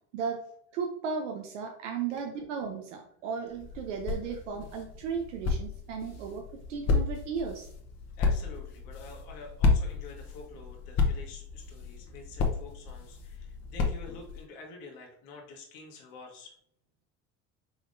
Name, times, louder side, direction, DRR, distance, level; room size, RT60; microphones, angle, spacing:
voice 1, 0.7-6.4 6.7-7.7, right 6 dB, 90° right, 2 dB, 0.7 m, -35 dB
sound 1, 3.5-14.4, left 4 dB, 45° left, 1.0 m, -32 dB
voice 2, 8.2-16.5, left 3 dB, 65° left, 1 dB, 1.2 m, -48 dB
4.8 x 3.5 x 2.6 m, 0.64 s
hypercardioid pair, 80°, 36 cm